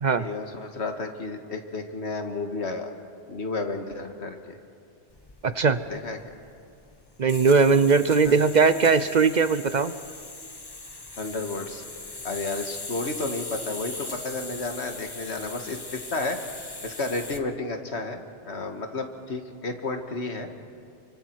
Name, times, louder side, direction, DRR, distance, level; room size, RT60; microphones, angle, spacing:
voice 1, 0.2-2.9 3.3-4.6 5.9-6.2 8.2-8.4 11.2-11.8 12.2-15.8 16.1-16.4 16.8-18.2 18.5-20.5, left 3 dB, 85° left, 5 dB, 1.9 m, -32 dB
sound 1, 5.1-17.5, left 2 dB, 20° left, 1.1 m, -40 dB
voice 2, 5.4-5.8 7.2-9.9, right 5 dB, 50° right, 12 dB, 0.7 m, -20 dB
29.5 x 24.0 x 4.6 m, 2.4 s
omnidirectional pair, 1.1 m